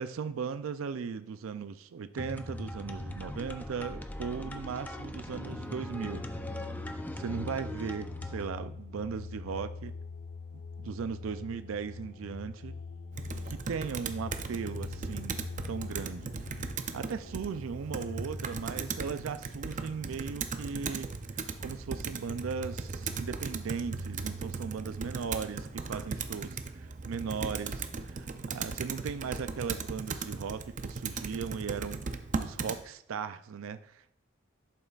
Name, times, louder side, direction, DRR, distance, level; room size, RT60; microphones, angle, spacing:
voice 1, 0.0-6.2 7.1-9.9 10.5-12.7 13.5-15.4 15.7-16.6 16.9-21.1 21.3-32.0 32.4-34.2, right 6 dB, 85° right, 11 dB, 0.4 m, -37 dB
sound 1, 2.2-8.5, left 1 dB, 10° left, 0.5 m, -40 dB
sound 2, 5.5-18.9, left 3 dB, 65° left, 0.7 m, -43 dB
Computer keyboard, 13.1-32.8, right 4 dB, 40° right, 0.5 m, -38 dB
11.0 x 8.4 x 2.4 m, 0.76 s
head